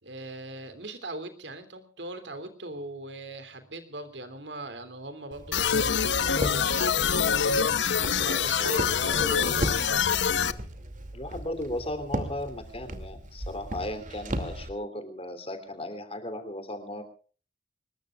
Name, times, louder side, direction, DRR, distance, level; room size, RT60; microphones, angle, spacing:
voice 1, 0.0-7.0 8.1-10.1, right 2 dB, 85° right, 9 dB, 3.1 m, -40 dB
Walk footsteps, 5.3-14.7, right 1 dB, 45° right, 2.5 m, -37 dB
sound 1, 5.5-10.5, left 7 dB, 85° left, 0.9 m, -25 dB
voice 2, 8.1-8.8 9.0-9.8 11.1-17.0, left 1 dB, 35° left, 9 dB, 3.1 m, -36 dB
25.0 x 21.0 x 2.4 m, 0.40 s
head